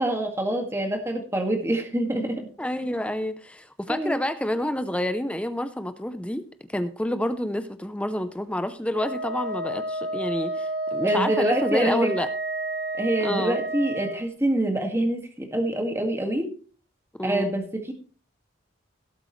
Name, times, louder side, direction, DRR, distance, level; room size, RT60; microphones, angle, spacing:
voice 1, 0.0-2.5 3.9-4.2 11.0-12.1 12.9-16.5 17.2-17.9, right 1 dB, 15° right, 3 dB, 1.9 m, -26 dB
voice 2, 2.6-6.5 6.7-12.3 13.2-13.6 17.2-17.5, left 1 dB, 5° left, 10 dB, 0.6 m, -28 dB
Wind instrument woodwind instrument, 8.9-14.2, right 2 dB, 55° right, 1.7 m, -30 dB
17.0 x 8.1 x 3.2 m, 0.41 s
head